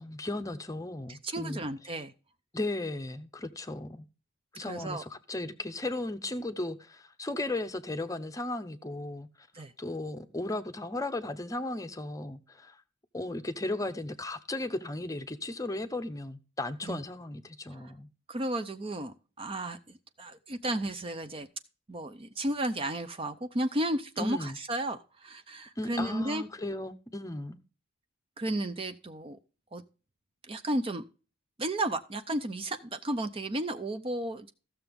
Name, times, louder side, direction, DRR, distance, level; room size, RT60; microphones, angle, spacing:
voice 1, 0.0-1.6 2.5-4.1 4.5-9.5 9.8-12.8 13.1-18.1 24.2-24.6 25.8-27.6, left 2 dB, 15° left, 0.7 m, -36 dB
voice 2, 1.1-2.1 4.7-5.0 9.5-9.7 16.8-17.0 17.7-17.9 18.3-21.5 21.9-26.4 28.4-29.4 29.7-29.8 30.5-31.0 31.6-34.5, right 1 dB, 25° right, 0.6 m, -33 dB
14.5 x 6.8 x 3.5 m
head